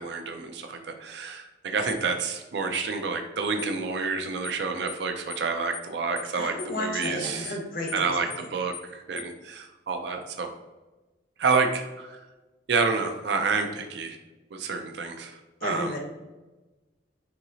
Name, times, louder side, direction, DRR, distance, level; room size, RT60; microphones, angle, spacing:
voice 1, 0.0-7.6 7.9-10.5 11.4-12.2 12.7-14.2 14.5-16.0, right 4 dB, 70° right, 5 dB, 0.5 m, -29 dB
sound 1, 1.9-2.0 2.7-2.9 3.6-3.8 4.4-4.6 4.9-5.0 5.3-5.5 5.7-5.9 6.2-6.3 6.6-6.8 7.0-7.2 7.4-7.6 7.9-8.0 8.3-8.5 8.7-8.9 9.2-9.3, left 9 dB, 30° left, 0.4 m, -40 dB
voice 2, 6.3-8.1 15.6-16.0, left 1 dB, 50° left, 1 dB, 0.9 m, -32 dB
5.8 x 2.8 x 2.7 m, 1.1 s
head